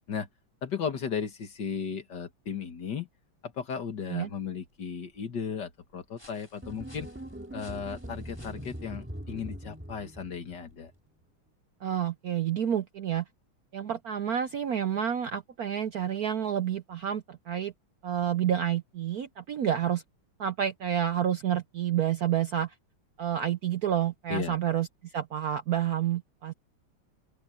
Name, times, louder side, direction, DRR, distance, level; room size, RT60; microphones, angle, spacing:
voice 1, 0.6-3.1 3.4-7.1 7.5-10.9 24.3-24.6, left 6 dB, 55° left, 2.2 m, -35 dB
sound 1, 3.9-11.2, left 1 dB, 10° left, 5.2 m, -61 dB
sound 2, 6.6-10.9, right 1 dB, 5° right, 1.9 m, -42 dB
voice 2, 11.8-13.2 13.7-17.7 18.0-20.0 20.4-22.7 23.2-26.5, right 10 dB, 65° right, 0.9 m, -29 dB
open air
omnidirectional pair, 2.3 m